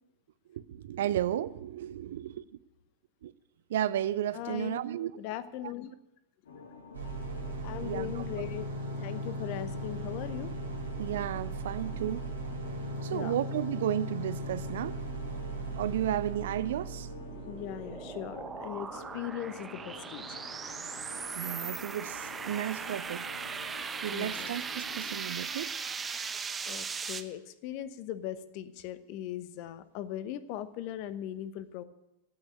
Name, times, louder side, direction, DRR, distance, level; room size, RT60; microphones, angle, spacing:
voice 1, 0.5-2.4 3.2-3.3 3.7-5.1 7.8-8.1 11.0-12.2 13.0-15.0 15.8-17.1 21.3-23.2 24.0-25.7, right 11 dB, 60° right, 0.5 m, -33 dB
voice 2, 4.3-4.8 5.2-5.9 7.6-8.7 9.0-10.5 13.1-13.3 17.5-20.4 24.1-24.5 26.6-31.8, left 11 dB, 45° left, 0.9 m, -39 dB
sound 1, 6.5-25.2, left 5 dB, 70° left, 1.5 m, -49 dB
sound 2, 6.9-18.8, right 2 dB, 75° right, 3.2 m, -38 dB
sound 3, 16.9-27.2, right 5 dB, 15° right, 1.0 m, -39 dB
15.5 x 6.2 x 9.7 m
figure-of-eight pair, 90°, 0 cm